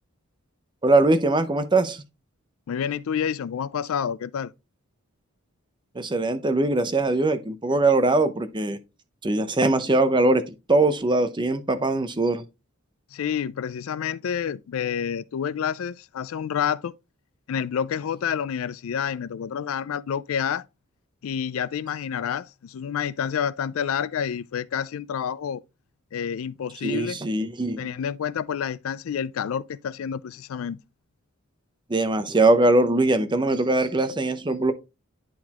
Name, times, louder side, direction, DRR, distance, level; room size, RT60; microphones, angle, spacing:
voice 1, 0.8-2.0 5.9-8.8 9.2-12.4 26.8-27.8 31.9-34.7, right 2 dB, 20° right, 0.7 m, -21 dB
voice 2, 2.7-4.5 13.1-16.9 17.5-20.7 21.2-25.6 26.1-27.2 27.8-30.8, left 8 dB, 75° left, 0.4 m, -29 dB
10.5 x 3.9 x 2.9 m
head